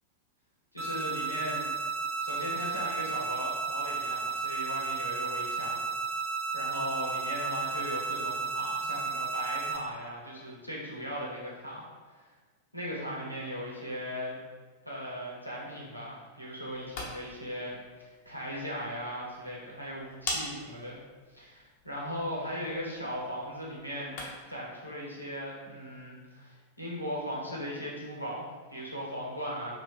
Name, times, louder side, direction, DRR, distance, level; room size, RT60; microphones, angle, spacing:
voice 1, 0.7-1.7 2.2-6.3 6.5-11.9 12.7-14.4 14.9-21.0 21.3-24.2 24.5-29.7, equal, 90° left, -5 dB, 0.8 m, -38 dB
sound 1, 0.8-9.8, right 4 dB, 20° right, 0.7 m, -33 dB
sound 2, 16.6-24.6, left 2 dB, 45° left, 0.8 m, -43 dB
2.8 x 2.7 x 3.6 m, 1.3 s
figure-of-eight pair, 90°, 0 cm